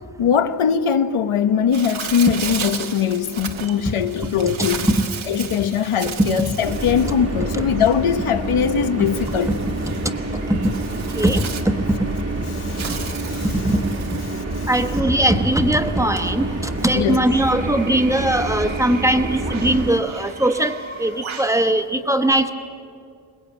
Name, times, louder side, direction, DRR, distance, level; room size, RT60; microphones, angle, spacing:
voice 1, 0.0-4.9 5.3-9.5 12.5-13.5 14.3-14.7 16.9-17.3, left 7 dB, 80° left, 1.1 m, -21 dB
Bird, 1.7-21.6, right 6 dB, 70° right, 1.4 m, -35 dB
sound 1, 6.6-20.0, right 2 dB, 30° right, 1.4 m, -27 dB
voice 2, 11.1-11.8 13.6-13.8 14.7-22.5, right 1 dB, 5° right, 1.1 m, -20 dB
23.0 x 20.5 x 8.7 m
wide cardioid pair, 150°, 49 cm